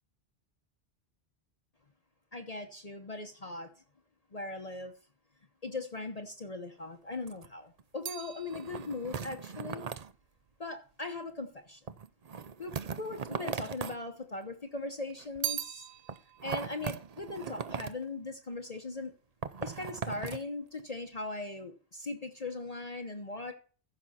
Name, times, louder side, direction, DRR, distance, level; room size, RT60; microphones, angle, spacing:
voice 1, 2.3-3.7 4.3-4.9 5.6-9.8 10.6-11.8 12.6-15.8 16.4-19.1 19.6-23.5, left 3 dB, 35° left, 5 dB, 1.0 m, -39 dB
sound 1, 6.8-7.0 7.3-7.5 7.8-7.9 8.5-10.1 11.9-14.0 15.1-15.4 16.1-18.0 19.4-20.5 20.8-20.9, right 6 dB, 45° right, 0.6 m, -39 dB
sound 2, 7.1-11.5 12.3-13.1 13.4-14.5 14.8-18.4 18.6-19.2, right 11 dB, 80° right, 0.9 m, -43 dB
15.0 x 6.0 x 4.2 m, 0.40 s
omnidirectional pair, 1.1 m